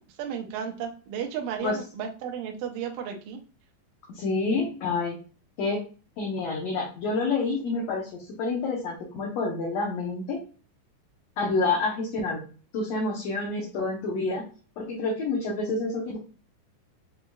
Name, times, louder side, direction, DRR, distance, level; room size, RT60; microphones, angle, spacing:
voice 1, 0.2-3.4, right 8 dB, 75° right, 2 dB, 2.1 m, -33 dB
voice 2, 4.1-5.2 5.6-5.8 6.2-10.4 11.4-12.4 12.7-14.4 14.8-16.2, left 3 dB, 70° left, -2 dB, 1.7 m, -28 dB
6.4 x 2.8 x 2.2 m, 0.37 s
omnidirectional pair, 3.7 m